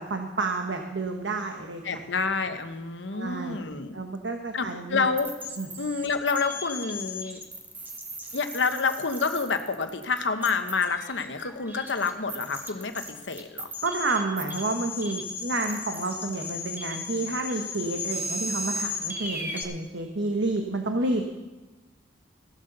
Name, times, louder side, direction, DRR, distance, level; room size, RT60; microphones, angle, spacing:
voice 1, 0.0-2.0 3.1-3.6 3.9-5.1 5.6-5.7 13.8-21.2, right 2 dB, 85° right, 4 dB, 1.1 m, -30 dB
voice 2, 1.8-4.0 4.5-5.3 5.8-7.4 8.3-13.7, left 4 dB, 85° left, 8 dB, 1.0 m, -28 dB
sound 1, 5.2-19.6, left 2 dB, 10° right, 1.4 m, -36 dB
15.5 x 7.9 x 6.6 m, 1.1 s
head